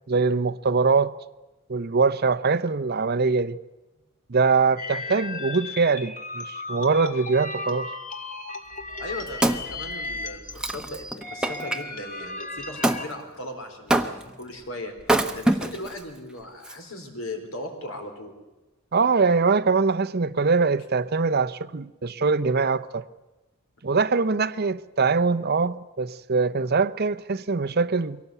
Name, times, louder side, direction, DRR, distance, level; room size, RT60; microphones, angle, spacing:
voice 1, 0.1-1.1 1.7-3.6 4.3-7.9 18.9-23.0 23.8-28.2, right 4 dB, 45° right, 0.6 m, -23 dB
sound 1, 4.8-13.1, left 3 dB, 35° left, 1.8 m, -36 dB
Wood, 8.8-11.8 12.8-13.1 13.9-14.4 15.0-16.0 16.6-16.7, right 1 dB, 5° right, 0.9 m, -25 dB
voice 2, 9.0-14.9 15.3-18.3, left 1 dB, 70° left, 4.3 m, -38 dB
23.0 x 17.5 x 8.2 m
head